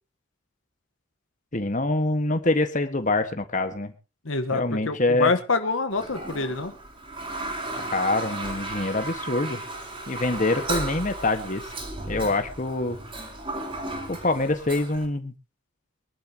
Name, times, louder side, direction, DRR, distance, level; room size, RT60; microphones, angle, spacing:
voice 1, 1.5-3.9 4.5-5.3 7.7-9.6 10.1-11.6 12.1-13.0 14.1-15.3, left 2 dB, 40° left, 8 dB, 1.6 m, -25 dB
voice 2, 4.2-6.7, left 3 dB, 75° left, 8 dB, 1.3 m, -26 dB
Toilet flush, 5.9-15.1, right 2 dB, 25° right, 4.0 m, -34 dB
24.0 x 11.5 x 3.0 m, 0.31 s
head